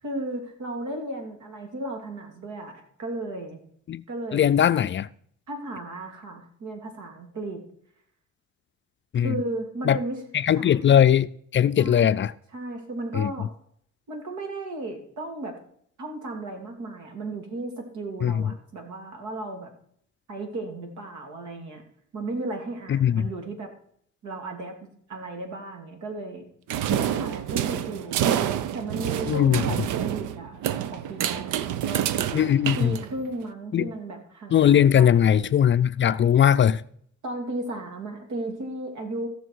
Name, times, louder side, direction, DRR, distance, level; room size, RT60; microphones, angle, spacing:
voice 1, 0.0-3.6 4.1-4.5 5.5-7.6 9.1-10.2 10.5-10.8 11.8-12.2 12.5-13.5 14.1-15.6 16.0-19.7 20.3-21.8 22.1-23.7 24.2-26.4 26.8-28.2 28.7-32.1 32.8-35.3 37.2-39.3, right 2 dB, 70° right, 2.9 m, -35 dB
voice 2, 4.3-5.1 9.1-9.4 9.9-10.0 10.4-11.3 11.5-12.3 13.2-13.3 18.2-18.4 22.9-23.3 29.3-29.6 32.3-32.9 33.7-33.9 34.5-36.8, left 9 dB, 40° left, 0.4 m, -19 dB
sound 1, 26.7-33.4, right 10 dB, 90° right, 0.6 m, -28 dB
16.0 x 6.6 x 4.7 m
cardioid pair, 90°, 30 cm